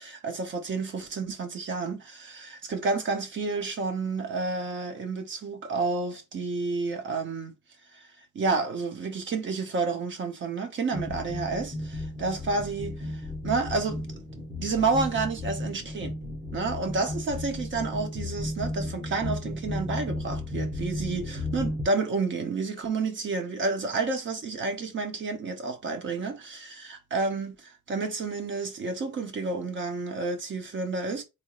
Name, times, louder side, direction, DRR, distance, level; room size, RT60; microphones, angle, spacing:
voice 1, 0.0-7.5 7.9-8.0 8.3-14.0 14.6-16.1 16.5-31.2, right 3 dB, 35° right, 0.8 m, -30 dB
sound 1, 10.9-21.8, left 1 dB, 15° right, 1.2 m, -34 dB
4.1 x 3.4 x 2.4 m
cardioid pair, 180°, 32 cm